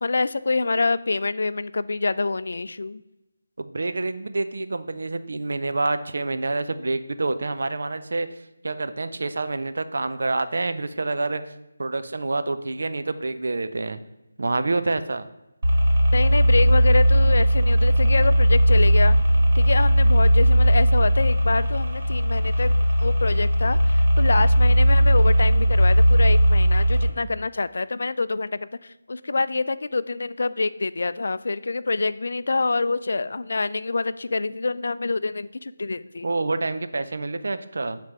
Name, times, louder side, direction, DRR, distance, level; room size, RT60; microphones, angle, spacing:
voice 1, 0.0-3.0 16.1-19.2 19.5-22.7 23.0-36.3, left 3 dB, 65° left, 15 dB, 0.3 m, -26 dB
voice 2, 3.6-8.3 8.6-11.4 11.8-14.0 14.4-15.3 36.2-38.0, right 3 dB, 70° right, 10 dB, 0.5 m, -27 dB
sound 1, 15.6-27.1, equal, 50° right, 2.1 m, -18 dB
7.9 x 3.4 x 5.7 m, 0.94 s
figure-of-eight pair, 165°, 0 cm